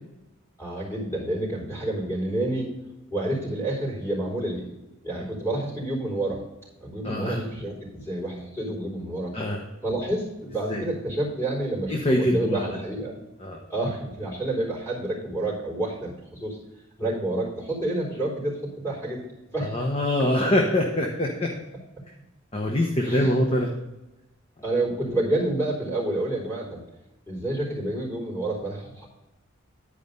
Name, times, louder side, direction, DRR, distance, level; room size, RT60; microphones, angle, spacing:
voice 1, 0.6-2.7 3.1-4.7 5.0-6.4 6.8-9.3 9.8-13.2 13.7-16.6 17.0-19.2 19.5-19.7 23.0-23.3 24.6-26.8 27.3-29.1, right 1 dB, 10° left, -4 dB, 3.8 m, -29 dB
voice 2, 7.0-7.4 9.3-9.6 10.7-10.8 11.9-12.7 13.4-13.6 19.7-21.5 22.5-23.7, left 1 dB, 30° left, 1 dB, 0.9 m, -24 dB
11.0 x 4.9 x 5.3 m, 0.98 s
head